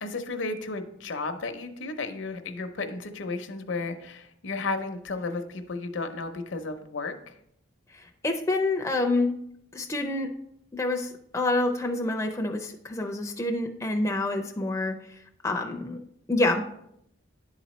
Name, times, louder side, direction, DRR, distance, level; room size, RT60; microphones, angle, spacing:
voice 1, 0.0-7.3, left 3 dB, 70° left, 7 dB, 0.6 m, -33 dB
voice 2, 7.9-9.3 9.7-10.3 10.7-15.0 15.4-16.0 16.3-16.6, left 2 dB, 15° left, 3 dB, 0.4 m, -27 dB
10.5 x 4.0 x 3.1 m, 0.75 s
head